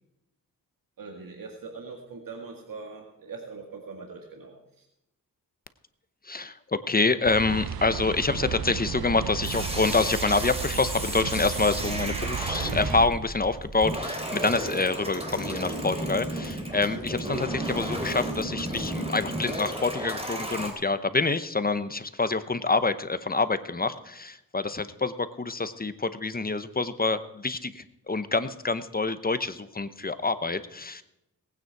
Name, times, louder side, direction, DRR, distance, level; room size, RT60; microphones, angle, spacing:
voice 1, 1.0-4.9, right 4 dB, 70° right, 2 dB, 2.0 m, -42 dB
voice 2, 6.2-31.0, left 3 dB, 25° left, 12 dB, 0.9 m, -27 dB
sound 1, 7.2-13.1, right 8 dB, 90° right, 0.7 m, -34 dB
sound 2, 9.4-20.7, right 1 dB, 15° right, 3.2 m, -33 dB
18.5 x 9.4 x 4.7 m, 0.87 s
wide cardioid pair, 85°, 34 cm